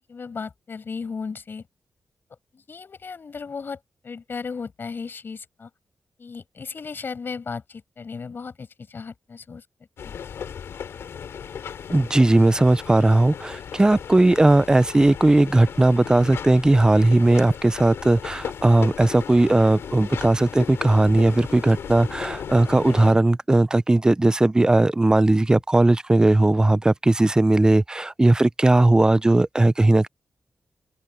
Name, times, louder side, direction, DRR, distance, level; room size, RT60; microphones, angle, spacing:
voice 1, 0.0-1.6 2.5-5.7 6.2-9.6 10.0-10.1, left 5 dB, 55° left, 6.3 m, -35 dB
sound 1, 10.0-23.1, left 7 dB, 80° left, 3.5 m, -36 dB
voice 2, 11.9-30.1, right 2 dB, 15° right, 0.5 m, -18 dB
open air
cardioid pair, 60°, 4 cm